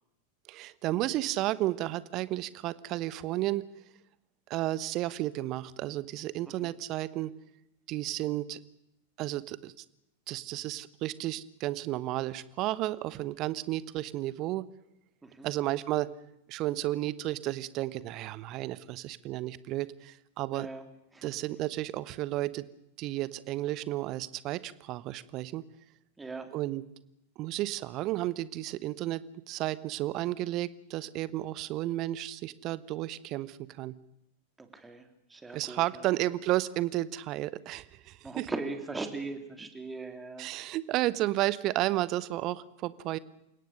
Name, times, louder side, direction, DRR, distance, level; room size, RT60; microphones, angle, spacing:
voice 1, 0.5-3.6 4.5-7.3 7.9-8.6 9.2-9.7 10.3-14.6 15.4-16.1 16.5-20.7 21.2-22.7 23.0-25.6 26.5-26.8 27.4-33.9 35.5-38.5 40.4-43.2, right 16 dB, 40° right, 18 dB, 1.1 m, -32 dB
voice 2, 20.5-20.9 21.1-21.3 26.2-26.5 34.6-36.1 38.2-40.5, right 3 dB, 10° right, 7 dB, 3.2 m, -40 dB
29.0 x 17.5 x 6.7 m, 0.84 s
figure-of-eight pair, 90°, 0 cm